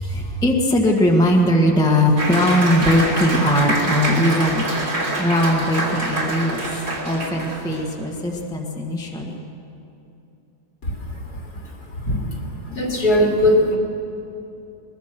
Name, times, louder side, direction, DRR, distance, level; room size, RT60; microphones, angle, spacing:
voice 1, 0.0-4.6 5.2-6.6 7.0-9.4, left 1 dB, ahead, 0 dB, 1.7 m, -19 dB
Applause, 2.2-7.9, right 2 dB, 55° right, 3.9 m, -25 dB
voice 2, 10.8-13.8, left 1 dB, 60° left, -1 dB, 3.4 m, -21 dB
22.0 x 21.0 x 6.1 m, 2.8 s
omnidirectional pair, 2.0 m